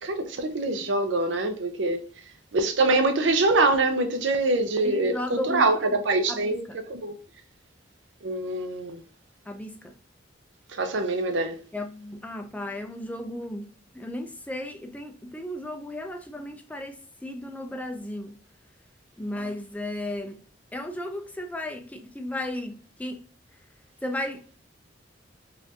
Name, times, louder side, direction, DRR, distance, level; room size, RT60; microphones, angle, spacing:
voice 1, 0.0-2.0 2.5-6.6 6.9-7.2 8.2-9.0 10.8-11.5, right 2 dB, 75° right, 0.6 m, -24 dB
voice 2, 4.8-6.0 6.3-6.8 9.5-9.9 11.7-13.7 13.9-17.0 17.2-18.3 19.2-20.4 20.7-23.2 24.0-24.4, left 1 dB, 10° left, 0.4 m, -34 dB
4.2 x 2.6 x 2.8 m
head